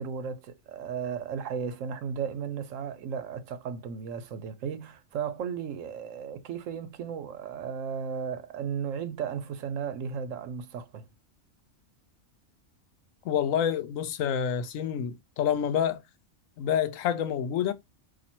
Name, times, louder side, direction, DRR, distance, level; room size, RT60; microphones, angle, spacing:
voice 1, 0.0-11.1, right 7 dB, 80° right, 1.0 m, -35 dB
voice 2, 13.2-16.0 16.6-17.7, left 9 dB, 85° left, 1.0 m, -28 dB
4.3 x 2.6 x 4.3 m
omnidirectional pair, 1.3 m